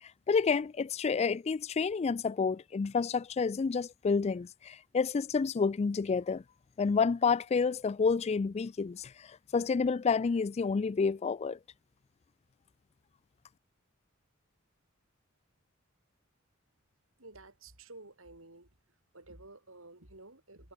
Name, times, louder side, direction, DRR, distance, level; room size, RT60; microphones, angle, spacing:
voice 1, 0.0-6.4 6.8-11.6, left 5 dB, 30° left, 0.3 m, -29 dB
voice 2, 17.2-18.7 19.1-20.7, right 2 dB, 70° right, 6.8 m, -52 dB
head